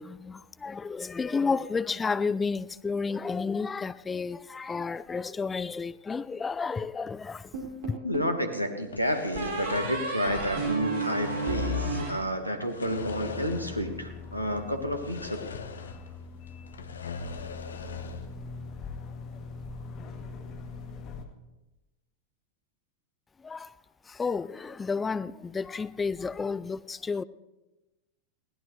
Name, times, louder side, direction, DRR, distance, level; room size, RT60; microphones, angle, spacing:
voice 1, 0.0-7.4 23.4-23.7 24.2-27.2, left 4 dB, 15° left, 0.4 m, -31 dB
sound 1, 7.5-8.4 9.3-12.8, right 2 dB, 55° right, 4.6 m, -32 dB
voice 2, 8.0-15.5, equal, 90° left, 1.6 m, -30 dB
sound 2, 8.8-10.6 10.8-12.1 12.6-14.0 14.2-14.3 14.9-16.2 16.5-18.3, left 4 dB, 70° left, 0.9 m, -41 dB
sound 3, 13.0-21.2, left 4 dB, 35° left, 1.9 m, -42 dB
21.0 x 17.0 x 3.3 m
figure-of-eight pair, 90°, 0 cm